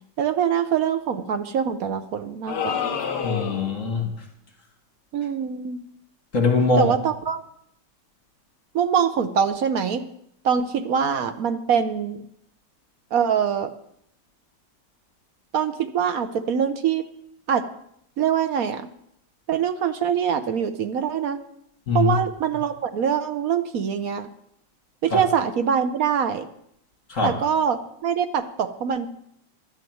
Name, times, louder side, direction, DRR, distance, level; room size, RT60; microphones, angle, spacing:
voice 1, 0.2-2.9 5.1-5.8 6.8-7.4 8.7-10.0 10.4-12.2 13.1-13.7 15.5-17.0 17.5-17.6 18.2-18.9 19.5-21.4 21.9-24.3 25.0-26.5 27.2-29.1, right 7 dB, 65° right, 9 dB, 0.9 m, -24 dB
sound 1, 2.5-3.8, left 7 dB, 60° left, 1.5 m, -28 dB
voice 2, 3.2-4.1 6.3-6.9 21.9-22.1 25.1-25.2 27.1-27.4, left 3 dB, 40° left, 3 dB, 2.1 m, -22 dB
11.5 x 6.5 x 9.3 m, 0.72 s
omnidirectional pair, 2.3 m